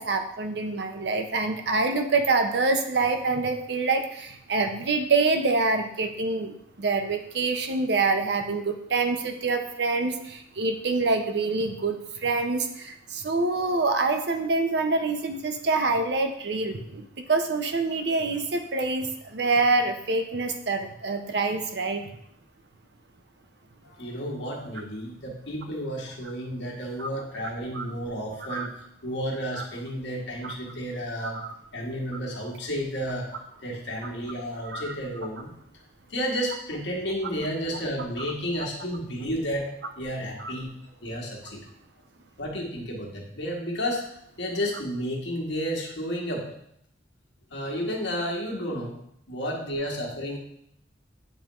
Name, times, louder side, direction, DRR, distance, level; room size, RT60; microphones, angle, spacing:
voice 1, 0.0-22.1 27.0-27.1 27.7-27.8 28.5-28.7 30.4-30.5 31.2-31.5 34.6-34.9 40.4-40.5, right 3 dB, 60° right, 6 dB, 0.6 m, -26 dB
voice 2, 23.8-28.8 29.0-31.4 31.7-33.3 33.6-35.5 36.1-40.7 41.0-41.6 42.4-44.0 44.4-46.5 47.5-49.0 49.3-50.4, equal, 70° left, -2 dB, 1.4 m, -32 dB
8.9 x 3.5 x 3.0 m, 0.74 s
head